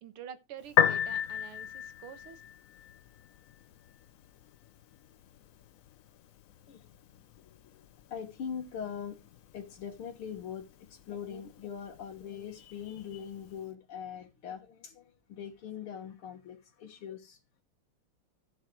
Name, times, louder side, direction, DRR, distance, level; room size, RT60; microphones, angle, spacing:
voice 1, 0.0-2.4, right 8 dB, 90° right, 2.1 m, -47 dB
Piano, 0.6-13.6, left 9 dB, 65° left, 0.8 m, -37 dB
voice 2, 7.4-7.9 8.1-9.2 9.5-17.6, left 8 dB, 85° left, 2.2 m, -42 dB
14.0 x 6.8 x 4.6 m
omnidirectional pair, 2.3 m